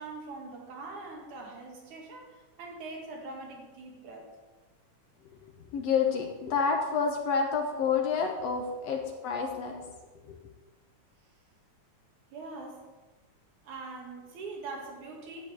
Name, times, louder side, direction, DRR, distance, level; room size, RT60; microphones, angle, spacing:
voice 1, 0.0-4.3 12.3-12.9 13.6-15.5, right 3 dB, 75° right, 0 dB, 3.3 m, -42 dB
voice 2, 5.7-9.9 10.2-10.4, left 5 dB, 65° left, 3 dB, 1.9 m, -29 dB
11.0 x 5.4 x 8.5 m, 1.2 s
omnidirectional pair, 3.5 m